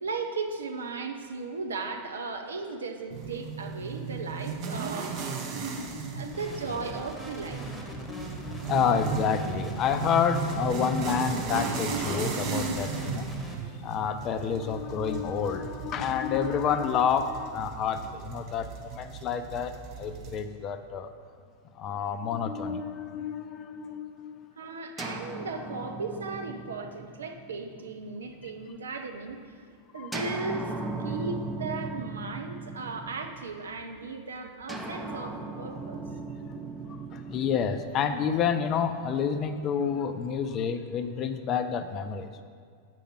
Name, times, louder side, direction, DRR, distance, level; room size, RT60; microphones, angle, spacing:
voice 1, 0.0-5.1 6.1-7.7 24.6-29.4 29.9-30.7 31.0-36.0, right 4 dB, 70° right, 5 dB, 0.7 m, -36 dB
sound 1, 3.1-20.4, right 5 dB, 40° right, 1.0 m, -36 dB
voice 2, 5.7-6.4 8.1-13.2 13.8-21.1 21.7-24.5 29.9-30.1 35.6-35.7 36.1-36.5 36.9-42.4, left 7 dB, 35° left, 9 dB, 0.5 m, -29 dB
sound 2, 6.3-13.5, right 1 dB, 10° left, 1.4 m, -41 dB
sound 3, 25.0-28.8 30.1-33.7 34.7-38.8, right 3 dB, 10° right, 0.7 m, -38 dB
8.4 x 5.0 x 6.3 m, 2.1 s
figure-of-eight pair, 90°, 0 cm